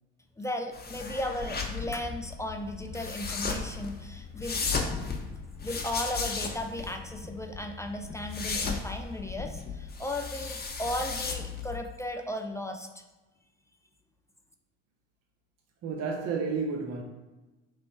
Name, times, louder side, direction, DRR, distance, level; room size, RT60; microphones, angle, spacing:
voice 1, 0.4-4.6 5.6-12.9, left 1 dB, 10° left, 0.4 m, -35 dB
sound 1, 0.7-11.8, left 5 dB, 30° left, 0.8 m, -35 dB
voice 2, 15.8-17.0, right 5 dB, 45° right, 0.7 m, -31 dB
3.1 x 3.0 x 4.6 m
hypercardioid pair, 55°, 35 cm